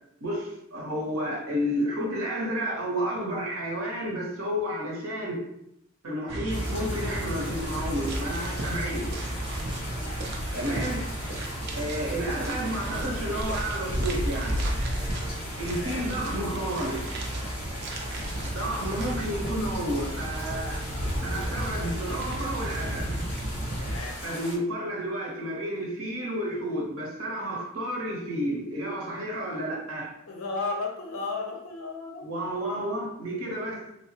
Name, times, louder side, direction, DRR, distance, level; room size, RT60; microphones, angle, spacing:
voice 1, 0.2-5.4 6.0-9.2 10.6-11.1 11.7-14.6 15.6-17.1 18.5-20.8 21.2-23.1 24.2-30.1 32.2-33.9, equal, 80° right, -2 dB, 0.8 m, -31 dB
sound 1, 6.3-24.0, right 1 dB, 55° right, 0.5 m, -32 dB
sound 2, 6.5-24.6, left 1 dB, 30° left, 1.2 m, -40 dB
voice 2, 10.5-10.9 15.7-16.1 23.8-24.2 30.3-32.7, left 3 dB, 75° left, 1 dB, 0.6 m, -35 dB
3.1 x 2.0 x 2.7 m, 0.78 s
head